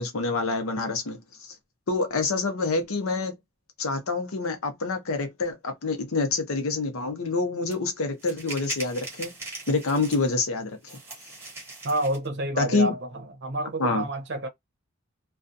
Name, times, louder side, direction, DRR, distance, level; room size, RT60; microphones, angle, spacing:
voice 1, 0.0-1.5 1.9-3.3 3.8-9.3 9.7-11.0 12.6-12.9 13.8-14.1, left 3 dB, 85° left, 0.7 m, -27 dB
sound 1, 7.7-7.8 8.2-10.4 10.8-12.3, right 2 dB, 10° right, 0.8 m, -40 dB
voice 2, 11.8-13.0 13.4-14.5, right 1 dB, 55° right, 0.6 m, -28 dB
2.4 x 2.3 x 2.5 m
head